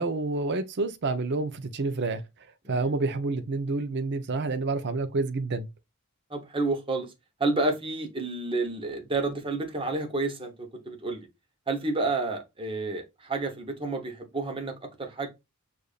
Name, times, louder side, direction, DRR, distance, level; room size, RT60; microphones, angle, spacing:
voice 1, 0.0-2.2 2.7-5.7, right 3 dB, 50° right, 0.6 m, -28 dB
voice 2, 6.3-7.1 7.4-10.5 10.8-11.3 11.7-15.3, right 3 dB, 25° right, 0.9 m, -30 dB
6.7 x 2.6 x 2.4 m
head